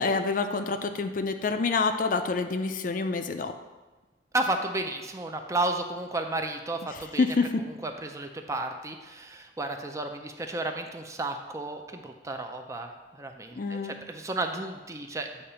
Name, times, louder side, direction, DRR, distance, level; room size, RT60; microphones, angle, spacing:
voice 1, 0.0-3.5 6.9-7.6 13.6-13.9, left 4 dB, 50° left, 8 dB, 0.4 m, -27 dB
voice 2, 4.3-7.3 7.7-15.3, right 2 dB, 15° right, 5 dB, 0.4 m, -33 dB
8.4 x 2.9 x 5.5 m, 1.2 s
head